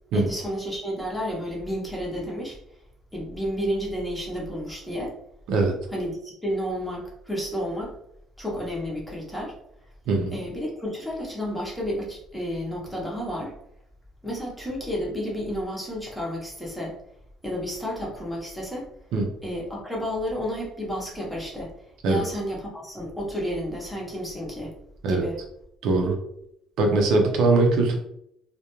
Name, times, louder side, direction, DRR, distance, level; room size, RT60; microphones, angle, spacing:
voice 1, 0.1-2.6 3.1-5.1 5.9-7.9 8.4-9.5 10.3-13.5 14.2-17.0 17.4-18.9 19.4-21.7 22.0-24.7 25.1-25.4, equal, 5° left, -4 dB, 0.7 m, -31 dB
voice 2, 25.8-26.1 26.8-28.0, right 3 dB, 70° right, 2 dB, 0.5 m, -21 dB
2.3 x 2.1 x 2.9 m, 0.75 s
cardioid pair, 135°, 0 cm